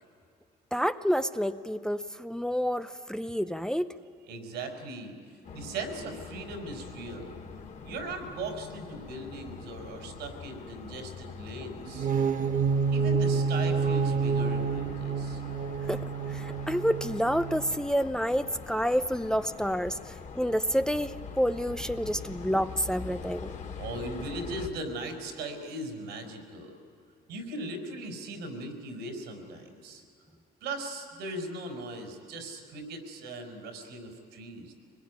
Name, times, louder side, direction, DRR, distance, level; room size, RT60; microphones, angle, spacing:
voice 1, 0.7-3.9 15.9-23.5, equal, 5° left, 10 dB, 0.6 m, -29 dB
voice 2, 4.3-5.1 5.5-7.4 7.8-12.1 12.9-15.4 22.0-22.2 23.2-26.7 27.3-30.0 30.6-34.7, right 2 dB, 85° right, 4 dB, 5.1 m, -39 dB
sound 1, 5.4-24.7, left 5 dB, 45° left, 2.4 m, -43 dB
sound 2, 11.8-17.8, right 5 dB, 50° right, 1.1 m, -28 dB
23.5 x 21.0 x 9.5 m, 2.3 s
cardioid pair, 110°, 17 cm